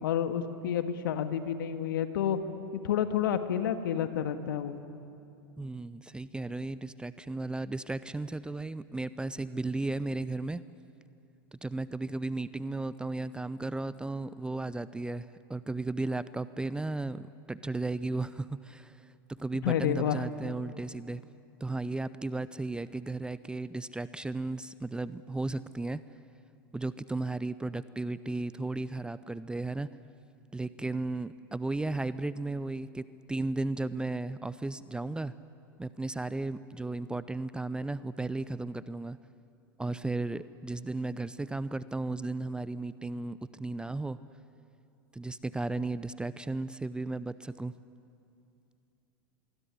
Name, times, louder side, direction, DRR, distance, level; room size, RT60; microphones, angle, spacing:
voice 1, 0.0-2.4 2.8-4.8 19.6-20.2, left 9 dB, 65° left, 9 dB, 1.9 m, -29 dB
voice 2, 5.6-10.6 11.5-21.2 21.6-26.0 26.7-29.9 30.5-35.3 35.8-39.2 39.8-44.2 45.1-47.7, right 2 dB, 5° right, 16 dB, 0.6 m, -35 dB
26.5 x 21.5 x 10.0 m, 2.6 s
figure-of-eight pair, 95°, 12 cm